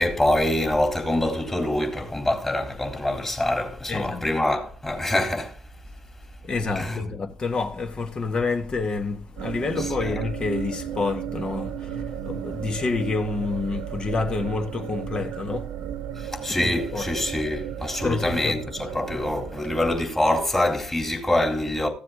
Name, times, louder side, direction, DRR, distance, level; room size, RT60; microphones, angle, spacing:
voice 1, 0.0-5.6 6.8-7.1 10.0-10.1 16.2-21.9, left 1 dB, 20° left, 3.8 m, -25 dB
voice 2, 3.9-4.3 6.4-15.7 16.5-17.1 18.0-18.6 19.6-19.7, left 4 dB, 40° left, 1.5 m, -28 dB
sound 1, 9.4-20.0, right 9 dB, 65° right, 0.8 m, -34 dB
15.0 x 7.6 x 4.0 m
hypercardioid pair, 50°, 2 cm